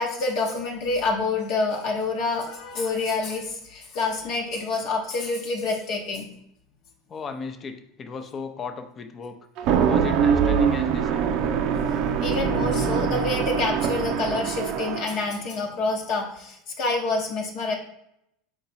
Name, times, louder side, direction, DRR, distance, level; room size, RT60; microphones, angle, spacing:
voice 1, 0.0-6.3 11.8-11.9 12.2-17.7, left 3 dB, 60° left, 0 dB, 0.9 m, -27 dB
voice 2, 7.1-9.4 9.9-11.3, left 5 dB, 30° left, 7 dB, 0.6 m, -36 dB
sound 1, 9.6-15.2, right 7 dB, 60° right, 0.5 m, -23 dB
4.6 x 2.8 x 4.1 m, 0.77 s
supercardioid pair, 105°, 0 cm